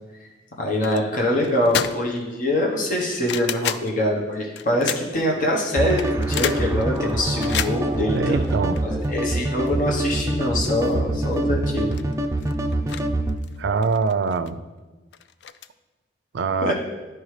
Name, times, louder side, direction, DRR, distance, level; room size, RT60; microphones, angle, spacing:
voice 1, 0.6-8.4 8.8-11.9 16.6-16.7, left 1 dB, 50° left, -1 dB, 1.0 m, -24 dB
sound 1, 0.8-1.1 1.4-2.2 2.6-3.9 4.6-5.3 5.8-9.2 9.7-9.8 10.1-10.2 10.6-11.1 11.3-11.4 11.7-13.0 13.3-14.5 15.1-15.7, left 9 dB, 75° left, 0.3 m, -31 dB
sound 2, 5.7-13.4, right 1 dB, 15° right, 0.4 m, -25 dB
voice 2, 8.1-8.8 13.6-14.6 16.3-16.7, right 4 dB, 90° right, 11 dB, 0.4 m, -23 dB
11.0 x 4.5 x 3.2 m, 1.2 s
head